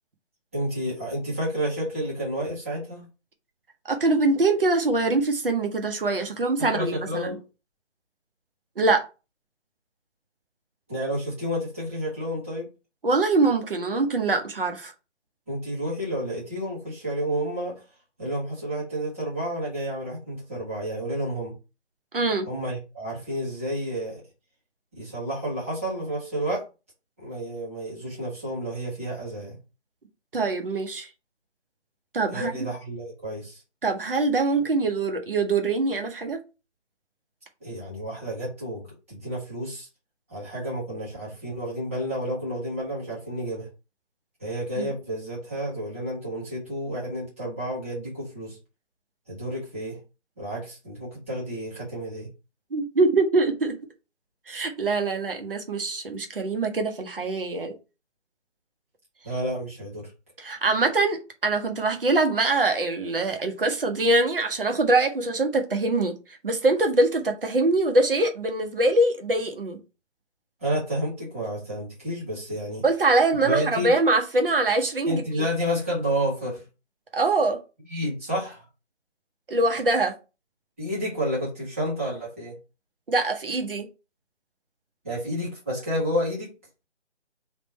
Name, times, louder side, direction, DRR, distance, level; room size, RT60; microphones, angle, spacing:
voice 1, 0.5-3.1 6.6-7.4 10.9-12.7 15.5-17.7 18.2-21.5 22.5-24.2 25.0-26.6 27.2-29.6 32.3-33.6 37.6-38.8 39.1-39.9 40.3-43.7 44.4-48.6 49.3-50.0 50.4-52.3 59.2-60.1 70.6-72.8 73.4-73.9 75.0-76.6 77.9-78.6 80.8-82.5 85.0-86.5, equal, 10° right, 0.9 m, -30 dB
voice 2, 3.8-7.4 8.8-9.1 13.0-14.9 22.1-22.5 30.3-31.1 32.1-32.6 33.8-36.4 44.8-44.9 52.7-53.8 54.5-57.7 60.4-69.8 72.8-75.4 77.1-77.6 79.5-80.1 83.1-83.9, right 2 dB, 50° right, 0.9 m, -23 dB
3.5 x 2.5 x 4.2 m
figure-of-eight pair, 165°, 36 cm